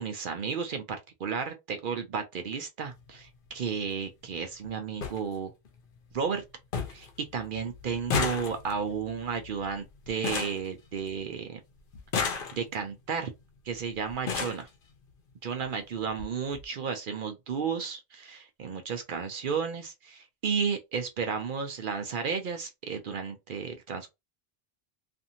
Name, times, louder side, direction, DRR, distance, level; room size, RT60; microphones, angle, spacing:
voice 1, 0.0-5.5 6.1-6.4 6.9-7.1 7.3-11.6 12.5-13.3 13.6-14.7 15.4-24.1, right 6 dB, 60° right, 0.7 m, -33 dB
sound 1, 2.9-3.1 4.3-4.4 4.6-4.7 5.0-5.2 5.7-6.1 6.4-6.5 6.7-7.1 7.4-11.4 11.9-12.9 13.7-13.8 14.1-14.7 15.6-15.7 16.1-16.3 16.5-16.6, left 5 dB, 65° left, 0.8 m, -33 dB
2.6 x 2.5 x 2.7 m
omnidirectional pair, 1.1 m